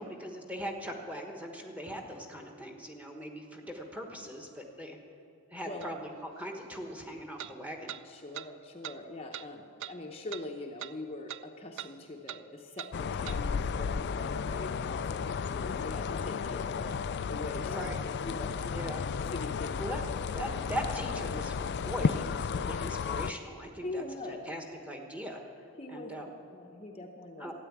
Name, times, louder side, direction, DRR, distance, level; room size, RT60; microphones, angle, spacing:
voice 1, 0.0-5.0 5.5-7.9 17.7-18.0 18.7-19.0 19.8-20.0 20.3-25.4 25.9-26.3 27.4-27.5, equal, 5° right, 2 dB, 1.2 m, -40 dB
sound 1, 5.8-5.9 7.4-7.5 7.9-8.0 8.3-8.5 8.8-9.0 9.3-9.5 9.8-9.9 10.3-10.5 10.8-11.0 11.3-11.4 11.8-11.9 12.3-12.4 12.8-12.9 13.3-13.4, right 11 dB, 55° right, 0.4 m, -41 dB
voice 2, 8.0-19.8 20.4-21.5 23.8-24.5 25.8-26.2 26.5-27.5, left 2 dB, 25° left, 1 dB, 0.8 m, -43 dB
sound 2, 12.9-23.3, left 6 dB, 50° left, 0.3 m, -33 dB
13.5 x 9.4 x 8.4 m, 2.7 s
head